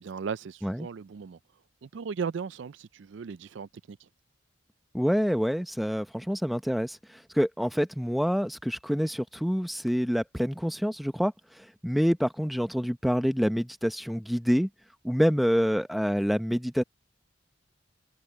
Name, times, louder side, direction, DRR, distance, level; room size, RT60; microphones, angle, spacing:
voice 1, 0.0-1.4 1.8-4.1, right 6 dB, 70° right, 0.4 m, -37 dB
voice 2, 4.9-11.3 11.6-14.7 15.0-16.8, equal, ahead, 0.7 m, -27 dB
head